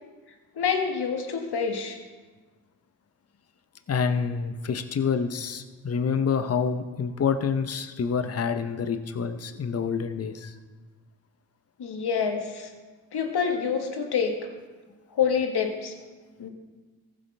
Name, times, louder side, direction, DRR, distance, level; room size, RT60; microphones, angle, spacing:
voice 1, 0.6-2.0 11.8-12.7 13.1-14.3 15.1-15.9 16.4-16.5, left 6 dB, 65° left, 4 dB, 1.6 m, -27 dB
voice 2, 3.9-10.5, left 6 dB, 35° left, 9 dB, 0.8 m, -27 dB
15.0 x 7.5 x 3.4 m, 1.3 s
supercardioid pair, 45°, 42 cm